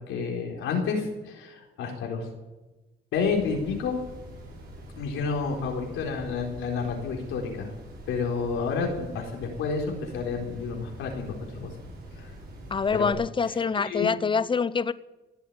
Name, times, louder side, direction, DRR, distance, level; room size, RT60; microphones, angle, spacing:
voice 1, 0.0-2.3 3.1-4.0 5.0-7.7 8.1-11.7 12.2-12.3 12.9-13.1 13.4-14.1, left 5 dB, 90° left, 4.2 m, -30 dB
sound 1, 3.1-13.1, equal, 50° right, 7.0 m, -44 dB
voice 2, 12.7-14.9, left 5 dB, 25° left, 0.7 m, -25 dB
17.0 x 8.3 x 9.7 m
cardioid pair, 90°, 20 cm